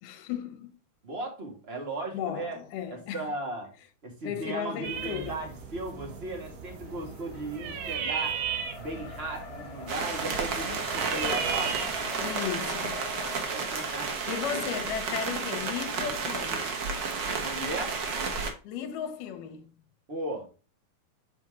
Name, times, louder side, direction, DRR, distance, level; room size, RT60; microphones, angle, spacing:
voice 1, 0.0-0.7 2.1-3.3 4.2-5.5 12.2-13.0 14.3-16.7 18.6-19.7, left 9 dB, 80° left, 2.4 m, -35 dB
voice 2, 1.0-2.6 2.9-3.7 4.0-8.4 8.7-11.8 13.5-14.9 17.4-18.0 20.1-20.5, right 2 dB, 25° right, 1.4 m, -37 dB
sound 1, 4.8-12.0, right 7 dB, 70° right, 2.1 m, -36 dB
Race car auto racing, 5.3-17.9, left 3 dB, 60° left, 2.2 m, -46 dB
sound 2, 9.9-18.5, right 5 dB, 85° right, 1.0 m, -32 dB
7.3 x 4.2 x 3.6 m
omnidirectional pair, 3.8 m